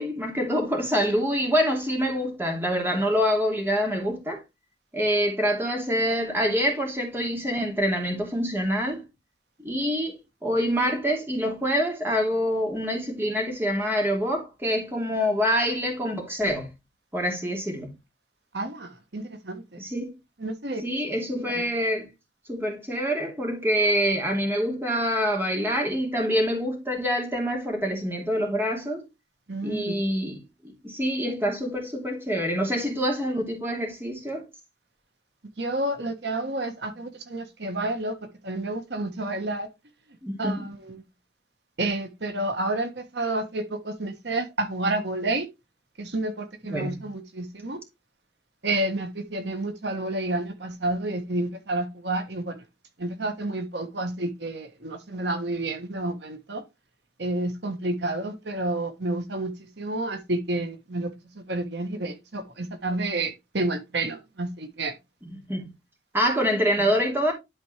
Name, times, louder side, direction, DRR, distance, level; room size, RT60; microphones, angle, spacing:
voice 1, 0.0-4.4 4.9-9.0 9.6-16.7 17.1-17.9 19.8-20.2 20.8-22.1 22.5-29.0 29.6-34.4 40.2-40.6 46.7-47.0 65.5-65.7 66.1-67.3, equal, 15° right, 2.6 m, -26 dB
voice 2, 18.5-19.8 20.4-20.8 21.3-21.6 29.5-29.9 35.6-38.2 38.4-39.7 40.4-41.0 41.8-45.5 46.0-47.8 48.6-52.6 53.0-56.6 57.2-61.1 61.3-64.9, right 2 dB, 75° right, 1.4 m, -30 dB
11.5 x 4.3 x 3.3 m
head